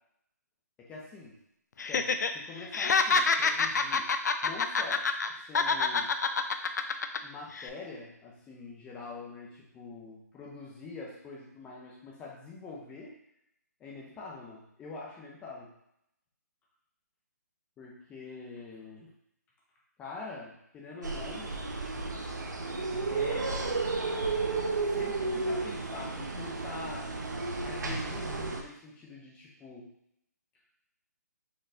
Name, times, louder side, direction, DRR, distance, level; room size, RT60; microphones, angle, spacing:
voice 1, 0.9-1.3 1.9-4.1 4.4-5.0 5.4-6.1 7.2-13.1 13.8-15.7 17.8-19.1 20.0-21.7 23.1-23.5 24.8-27.1 27.6-29.9, left 3 dB, 10° left, -3 dB, 0.7 m, -45 dB
Laughter, 1.8-2.3 2.6-5.3 5.5-7.2 7.5-7.7, left 4 dB, 75° left, 0.4 m, -27 dB
sound 1, 21.0-28.6, right 3 dB, 90° right, 0.6 m, -32 dB
4.4 x 3.0 x 2.6 m, 0.77 s
hypercardioid pair, 150°, 9 cm